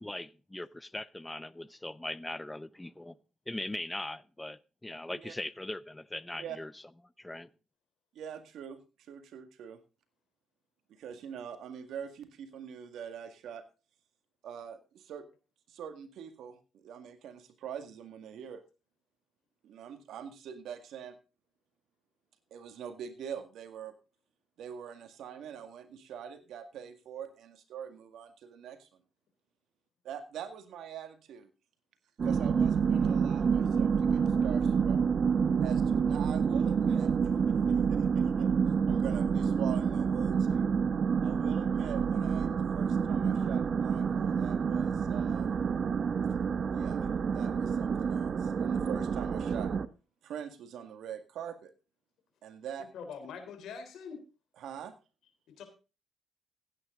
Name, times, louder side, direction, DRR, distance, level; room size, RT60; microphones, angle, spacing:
voice 1, 0.0-3.2 3.5-6.7 7.2-7.5, left 1 dB, 10° left, 0.7 m, -40 dB
voice 2, 8.1-8.8 9.1-9.8 10.9-13.6 14.4-15.3 15.7-18.6 19.6-21.2 22.5-23.9 24.6-28.9 30.0-31.5 32.2-35.0 35.6-38.5 38.9-40.7 41.2-45.6 46.7-49.7 50.2-51.7 52.4-52.9 54.6-54.9, right 8 dB, 80° right, 1.8 m, -44 dB
sound 1, 32.2-49.9, right 6 dB, 55° right, 0.9 m, -28 dB
voice 3, 52.9-54.2 55.5-55.6, left 6 dB, 75° left, 3.5 m, -43 dB
16.0 x 9.4 x 3.7 m
cardioid pair, 75°, 0 cm